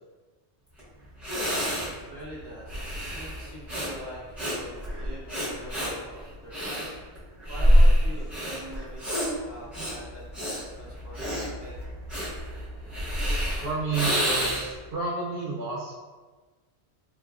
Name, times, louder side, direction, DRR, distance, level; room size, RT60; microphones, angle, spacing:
Breathing, 0.8-0.9 1.2-14.8, equal, ahead, 1.4 m, -26 dB
voice 1, 1.7-6.9 7.5-11.7, equal, 25° right, -8 dB, 0.8 m, -44 dB
voice 2, 13.6-15.9, right 4 dB, 65° right, -6 dB, 0.8 m, -31 dB
3.7 x 3.0 x 2.4 m, 1.3 s
omnidirectional pair, 1.1 m